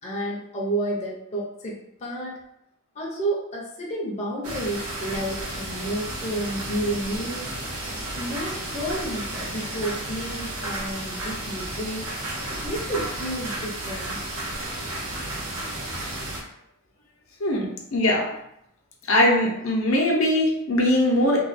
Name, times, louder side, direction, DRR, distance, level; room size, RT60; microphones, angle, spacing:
voice 1, 0.0-2.4 2.9-7.4 8.1-12.1 12.5-14.3, right 1 dB, 30° left, -4 dB, 0.6 m, -31 dB
sound 1, 4.4-16.4, right 1 dB, 90° right, 1.0 m, -32 dB
voice 2, 17.4-18.3 19.1-21.4, left 1 dB, 70° left, -1 dB, 0.8 m, -21 dB
3.1 x 2.2 x 4.1 m, 0.79 s
head